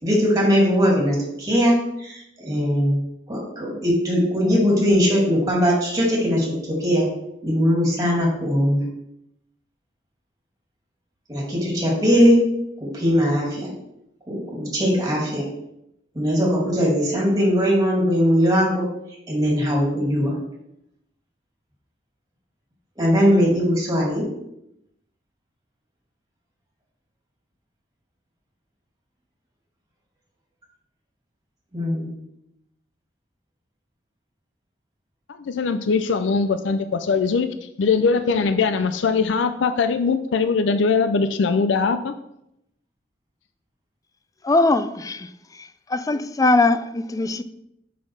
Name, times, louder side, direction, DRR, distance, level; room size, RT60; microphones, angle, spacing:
voice 1, 0.0-3.0 3.3-7.1 7.4-8.8 11.3-12.4 12.8-13.7 14.3-15.4 16.1-18.8 19.3-20.4 23.0-24.2 31.7-32.1, equal, 20° right, 2.6 m, -20 dB
voice 2, 35.4-42.1, left 4 dB, 90° left, 0.4 m, -21 dB
voice 3, 44.4-45.3 45.9-47.4, left 2 dB, 20° left, 0.3 m, -20 dB
6.3 x 5.7 x 4.8 m
head